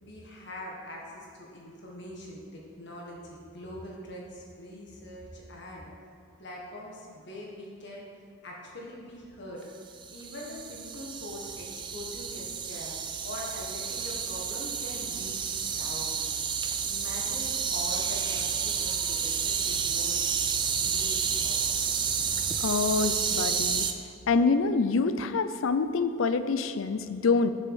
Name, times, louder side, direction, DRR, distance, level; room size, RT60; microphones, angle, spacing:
voice 1, 0.0-5.9 6.4-8.0 8.4-9.6 10.1-16.6 16.8-20.4 20.8-22.0, left 1 dB, 55° left, -2 dB, 1.5 m, -43 dB
sound 1, 9.9-23.9, right 6 dB, 25° right, 0.4 m, -30 dB
voice 2, 22.6-23.8 24.3-27.5, left 4 dB, 80° left, 11 dB, 0.5 m, -26 dB
7.1 x 7.0 x 6.5 m, 2.5 s
head